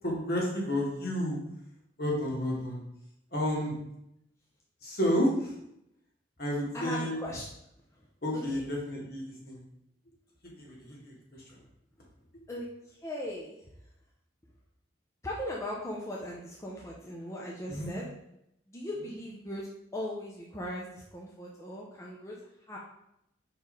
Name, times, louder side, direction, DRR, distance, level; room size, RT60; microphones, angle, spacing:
voice 1, 0.0-1.4 2.0-2.8 3.3-3.7 4.8-5.5 6.4-7.1 8.2-9.6 10.5-11.4 17.7-18.0 18.9-19.1, equal, 55° left, -3 dB, 1.8 m, -31 dB
voice 2, 6.7-7.5 8.3-8.6 12.5-13.6 15.2-18.1 18.7-22.4 22.7-22.8, left 1 dB, 15° left, -3 dB, 0.7 m, -38 dB
5.2 x 4.6 x 3.9 m, 0.80 s
head